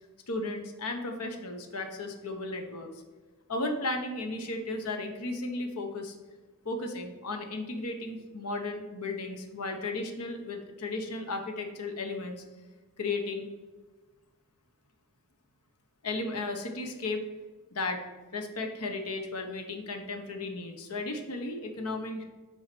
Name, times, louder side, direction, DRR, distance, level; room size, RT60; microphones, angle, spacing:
voice 1, 0.3-2.9 3.5-6.1 6.6-12.4 13.0-13.5 16.0-17.2 17.7-18.0 18.3-22.2, left 2 dB, 90° left, 4 dB, 1.1 m, -34 dB
7.1 x 4.7 x 6.1 m, 1.3 s
head